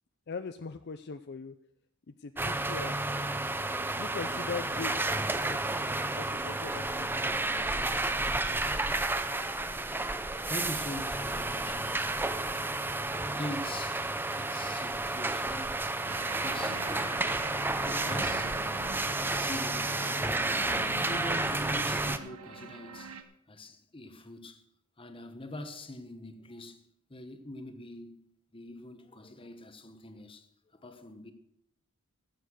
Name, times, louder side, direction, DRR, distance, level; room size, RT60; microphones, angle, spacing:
voice 1, 0.3-1.6 2.1-3.0 3.9-5.8 6.1-7.1, left 5 dB, 50° left, 0.5 m, -41 dB
sound 1, 2.4-22.2, right 2 dB, 10° right, 0.6 m, -31 dB
voice 2, 10.4-12.1 13.2-14.1 14.4-15.8 16.3-17.4 17.8-18.6 19.3-23.2 23.5-24.6 25.0-28.3 28.5-31.3, left 1 dB, 25° left, 1.2 m, -43 dB
sound 2, 16.1-23.2, right 5 dB, 90° right, 1.2 m, -43 dB
14.5 x 8.0 x 6.4 m
head